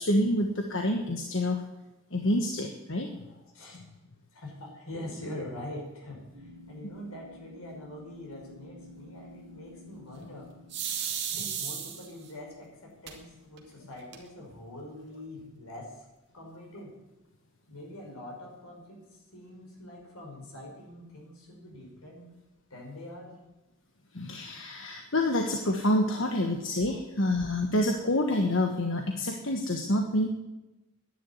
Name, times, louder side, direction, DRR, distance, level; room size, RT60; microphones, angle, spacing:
voice 1, 0.0-1.6 2.1-3.2 24.1-30.3, left 1 dB, 60° left, 3 dB, 1.4 m, -27 dB
voice 2, 3.0-3.8 4.3-10.5 11.3-16.0 16.3-17.0 17.7-22.3 22.7-23.4 26.1-27.4, left 1 dB, 85° left, -1 dB, 5.8 m, -44 dB
sound 1, 6.3-11.3, left 2 dB, 80° right, 2.8 m, -50 dB
sound 2, 10.7-12.3 13.1-13.2 13.6-13.7 13.9-14.5, right 8 dB, 50° right, 2.4 m, -34 dB
11.0 x 10.5 x 9.5 m, 1.0 s
head